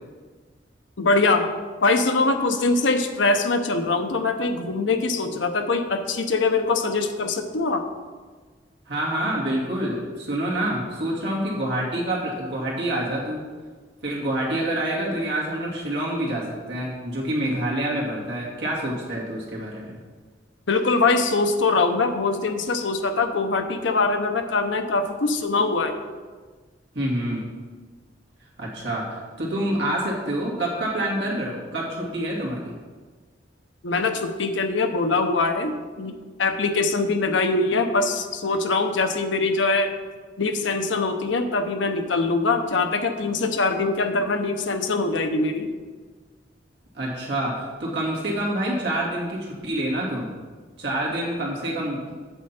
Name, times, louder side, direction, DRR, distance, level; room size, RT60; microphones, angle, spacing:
voice 1, 1.0-1.5 1.8-7.8 20.7-25.9 33.8-39.9 40.4-45.7, left 3 dB, 80° left, 7 dB, 0.8 m, -23 dB
voice 2, 8.9-13.4 14.0-19.9 26.9-27.4 28.6-32.8 46.9-50.3 50.8-52.1, right 1 dB, 65° right, -4 dB, 2.4 m, -27 dB
8.0 x 7.6 x 4.4 m, 1.4 s
head